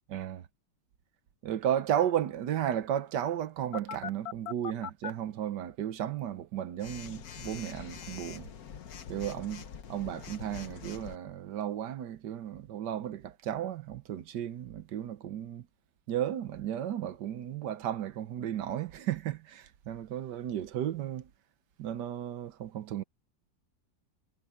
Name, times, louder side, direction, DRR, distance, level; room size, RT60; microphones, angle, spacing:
voice 1, 0.1-0.5 1.4-8.5 9.1-15.7 16.1-21.3 21.8-23.0, right 10 dB, 70° right, 1.4 m, -34 dB
Telephone, 3.7-5.1 6.8-11.2, left 8 dB, 55° left, 1.5 m, -42 dB
omnidirectional pair, 1.9 m